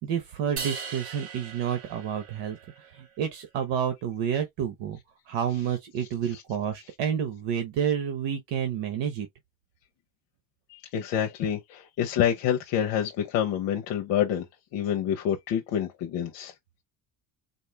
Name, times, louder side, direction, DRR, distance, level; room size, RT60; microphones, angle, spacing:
voice 1, 0.0-5.0 5.3-9.3, right 8 dB, 75° right, 1.1 m, -29 dB
sound 1, 0.6-2.9, right 5 dB, 55° right, 1.7 m, -38 dB
voice 2, 10.7-14.5 14.7-16.5, left 9 dB, 75° left, 1.0 m, -27 dB
4.2 x 2.7 x 3.3 m
cardioid pair, 150°, 42 cm